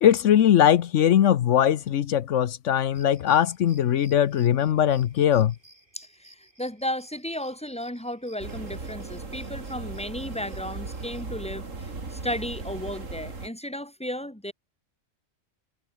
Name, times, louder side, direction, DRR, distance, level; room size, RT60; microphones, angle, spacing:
voice 1, 0.0-5.5, left 10 dB, 75° left, 1.1 m, -20 dB
sound 1, 2.9-11.3, right 1 dB, 40° right, 6.6 m, -57 dB
voice 2, 5.9-14.5, left 1 dB, 5° left, 2.6 m, -34 dB
sound 2, 8.4-13.5, right 3 dB, 80° right, 3.5 m, -37 dB
omnidirectional pair, 1.3 m